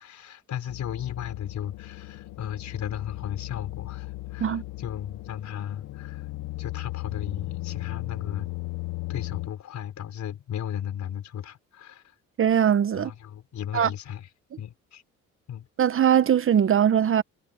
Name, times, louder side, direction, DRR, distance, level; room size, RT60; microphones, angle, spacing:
voice 1, 0.0-6.3 6.6-8.5 9.1-12.1 12.9-14.3 14.6-15.0 15.5-15.7, left 10 dB, 70° left, 4.6 m, -35 dB
sound 1, 0.7-9.5, left 20 dB, 90° left, 1.1 m, -36 dB
voice 2, 12.4-13.1 13.7-13.9 15.8-17.2, right 9 dB, 45° right, 0.8 m, -21 dB
cardioid pair, 90°, 30 cm